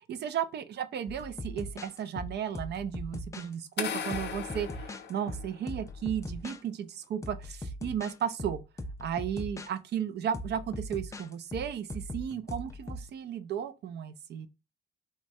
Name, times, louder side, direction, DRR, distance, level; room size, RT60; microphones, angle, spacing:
voice 1, 0.1-8.6 9.0-14.5, right 8 dB, 60° right, 0.5 m, -34 dB
sound 1, 1.1-3.5 4.1-6.6 7.0-9.7 10.3-13.1, left 1 dB, 15° left, 0.4 m, -40 dB
sound 2, 3.8-5.9, left 7 dB, 60° left, 0.6 m, -37 dB
3.1 x 2.2 x 2.6 m
cardioid pair, 90°, 20 cm